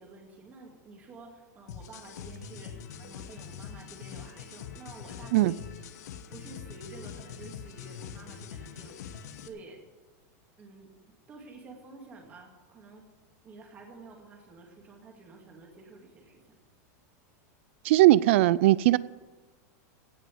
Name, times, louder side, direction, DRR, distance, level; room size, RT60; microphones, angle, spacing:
voice 1, 0.0-5.6 6.3-9.8 10.6-10.9 11.3-13.1 13.4-16.4, right 3 dB, 15° right, 2.2 m, -50 dB
sound 1, 1.7-9.5, left 8 dB, 70° left, 1.2 m, -43 dB
voice 2, 17.8-19.0, right 16 dB, 45° right, 0.3 m, -19 dB
17.0 x 6.1 x 9.3 m
supercardioid pair, 180°, 9 cm